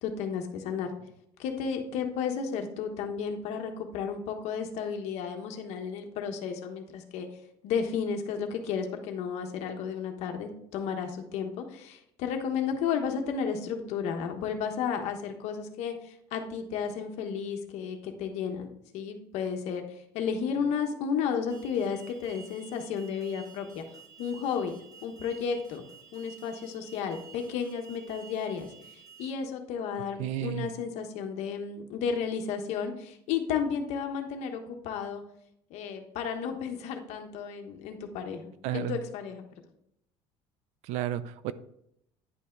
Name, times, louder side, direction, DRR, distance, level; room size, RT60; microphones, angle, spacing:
voice 1, 0.0-0.9 1.4-7.3 7.6-18.7 18.9-19.8 20.1-23.8 24.2-24.7 25.0-25.8 26.1-28.7 29.2-35.2 35.7-39.4, left 6 dB, 60° left, 4 dB, 1.3 m, -33 dB
Alarm, 21.5-29.3, right 6 dB, 25° right, 1.1 m, -52 dB
voice 2, 30.2-30.7 38.6-39.0 40.8-41.5, right 12 dB, 65° right, 15 dB, 0.5 m, -32 dB
10.0 x 5.6 x 3.9 m, 0.75 s
cardioid pair, 165°, 13 cm